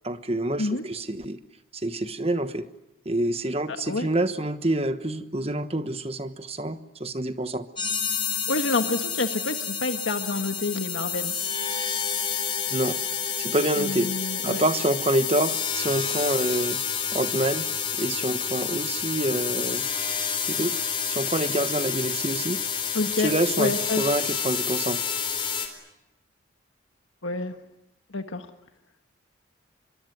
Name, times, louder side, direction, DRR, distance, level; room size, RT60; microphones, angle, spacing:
voice 1, 0.0-1.4 1.7-2.7 3.0-7.7 12.7-13.0 13.4-14.1 14.4-16.8 17.1-19.9 20.4-22.6 23.2-25.0, right 1 dB, 30° right, 10 dB, 1.2 m, -27 dB
sound 1, 7.8-25.7, left 7 dB, 25° left, 4.0 m, -29 dB
voice 2, 8.5-11.3 13.8-14.6 22.9-23.3 23.6-24.0 27.2-27.5 28.1-28.5, left 3 dB, 75° left, 6 dB, 1.5 m, -28 dB
24.5 x 23.0 x 9.4 m, 0.91 s
head